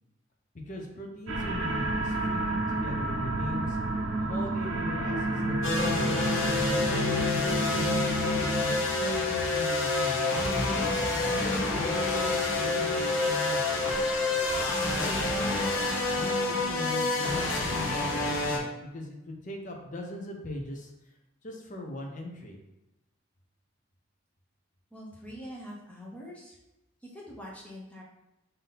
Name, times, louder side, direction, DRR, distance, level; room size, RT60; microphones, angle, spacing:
voice 1, 0.7-3.8 4.2-6.2 6.7-8.0 8.6-10.5 11.2-14.0 14.8-15.8 16.1-20.9 21.4-22.6, left 1 dB, 40° left, 2 dB, 0.6 m, -40 dB
sound 1, 1.3-8.8, right 1 dB, 70° right, 0.5 m, -30 dB
sound 2, 5.6-18.6, left 3 dB, 75° left, 0.7 m, -28 dB
voice 2, 24.9-26.6 27.1-28.0, equal, 5° left, -4 dB, 0.8 m, -44 dB
3.6 x 2.7 x 3.9 m, 0.93 s
head